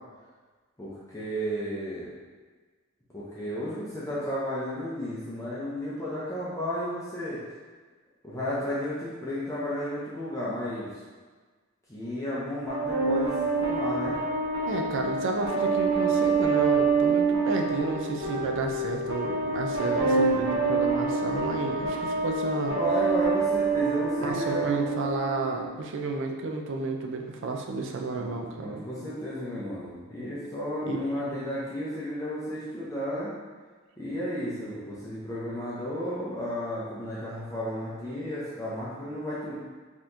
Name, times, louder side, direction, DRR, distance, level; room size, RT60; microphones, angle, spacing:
voice 1, 0.8-2.1 3.1-7.4 8.2-10.9 11.9-14.2 22.7-24.7 28.2-28.3 28.6-33.3 34.0-39.5, equal, 15° left, -9 dB, 0.6 m, -33 dB
sound 1, 12.7-25.7, right 4 dB, 80° right, 1.2 m, -26 dB
voice 2, 14.7-22.8 24.2-28.7 30.9-31.2, right 3 dB, 65° right, 3 dB, 0.4 m, -32 dB
4.0 x 2.9 x 2.6 m, 1.4 s
head